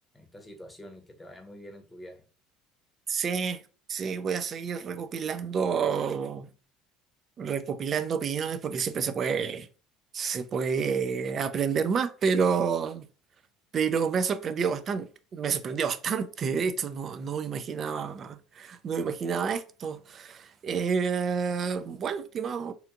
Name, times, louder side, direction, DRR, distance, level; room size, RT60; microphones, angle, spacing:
voice 1, 0.1-2.2, equal, 10° left, 0.7 m, -46 dB
voice 2, 3.1-3.6 3.9-6.5 7.4-9.7 10.1-13.0 13.7-22.7, right 6 dB, 45° right, 0.3 m, -29 dB
2.8 x 2.4 x 2.5 m
hypercardioid pair, 70°, 0 cm